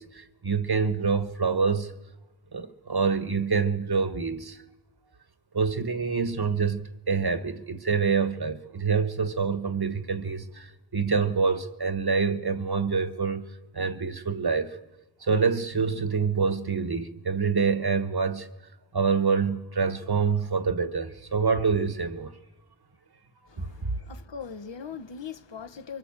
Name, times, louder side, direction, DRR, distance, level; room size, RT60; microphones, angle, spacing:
voice 1, 0.0-1.9 2.5-4.6 5.5-14.8 15.2-18.5 18.9-22.3 23.6-23.9, right 5 dB, 50° right, 1.7 m, -26 dB
voice 2, 23.5-26.0, left 6 dB, 65° left, 1.2 m, -40 dB
25.5 x 24.0 x 7.4 m
wide cardioid pair, 70°, 48 cm